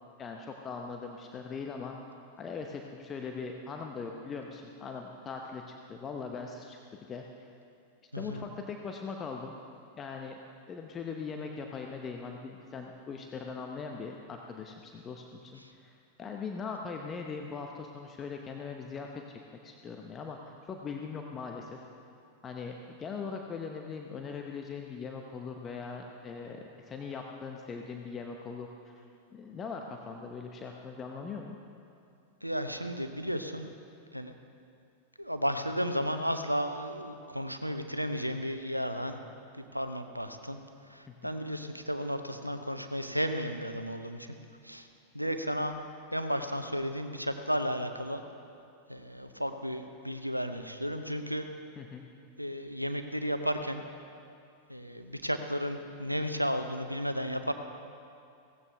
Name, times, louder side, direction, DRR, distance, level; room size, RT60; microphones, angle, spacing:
voice 1, 0.2-2.0 2.4-6.8 7.1-7.2 8.2-9.6 10.0-10.4 10.7-21.8 22.4-29.1 29.3-31.6 41.1-41.3 51.8-52.0, left 5 dB, 25° left, 2 dB, 0.9 m, -40 dB
voice 2, 8.1-8.4 15.6-15.7 32.4-33.7 34.1-34.3 35.2-39.2 39.6-40.6 40.9-44.4 44.6-44.9 45.1-45.7 46.1-48.2 48.9-51.5 52.4-53.8 54.7-57.5, equal, 90° right, 8 dB, 0.8 m, -33 dB
17.0 x 15.0 x 3.5 m, 2.5 s
figure-of-eight pair, 90°, 0 cm